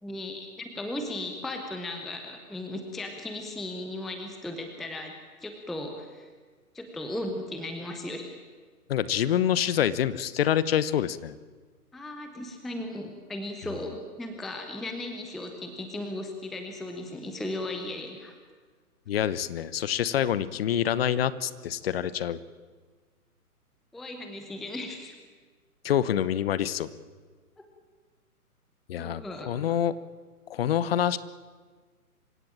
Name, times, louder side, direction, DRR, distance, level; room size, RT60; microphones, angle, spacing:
voice 1, 0.0-5.1 5.4-6.3 6.7-8.4 11.9-18.4 23.9-25.1 27.6-27.7 29.0-29.5, left 1 dB, ahead, 5 dB, 0.6 m, -36 dB
voice 2, 8.9-11.4 19.1-22.4 25.8-26.9 28.9-29.9 30.5-31.2, left 10 dB, 40° left, 17 dB, 1.0 m, -26 dB
27.0 x 16.5 x 8.8 m, 1.5 s
hypercardioid pair, 135°, 45 cm